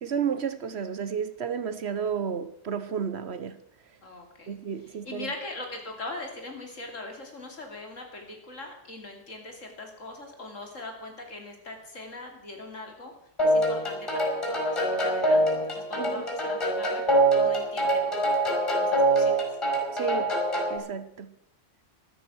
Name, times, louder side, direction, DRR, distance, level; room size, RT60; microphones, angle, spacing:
voice 1, 0.0-3.6 4.5-5.3 16.0-16.2 19.9-20.3 20.7-21.3, right 7 dB, 60° right, 1.1 m, -32 dB
voice 2, 4.0-4.6 4.9-13.1 13.4-18.3 18.7-19.5, left 2 dB, 80° left, 3.2 m, -41 dB
sound 1, 13.4-20.8, right 1 dB, 20° left, 5.3 m, -24 dB
13.0 x 13.0 x 6.2 m
omnidirectional pair, 1.3 m